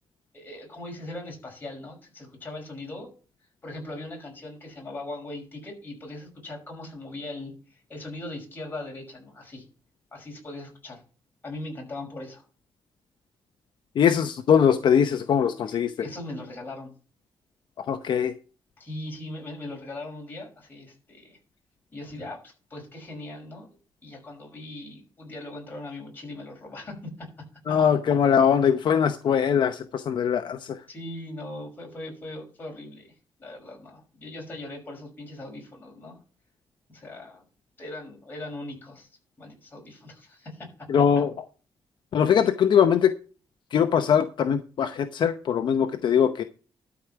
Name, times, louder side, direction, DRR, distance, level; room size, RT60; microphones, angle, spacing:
voice 1, 0.3-3.1 3.6-9.6 10.1-11.0 11.4-12.5 16.0-16.9 18.8-21.4 21.9-23.7 24.0-27.3 27.7-27.8 30.9-33.1 33.4-36.2 36.9-37.4 37.8-39.1 39.4-41.0, left 2 dB, 25° left, 0 dB, 5.7 m, -39 dB
voice 2, 14.0-15.9 17.8-18.3 27.7-30.8 40.9-41.3 42.1-43.1 43.7-46.4, left 8 dB, 65° left, 7 dB, 0.8 m, -21 dB
12.5 x 4.9 x 6.8 m, 0.36 s
wide cardioid pair, 145°, 9 cm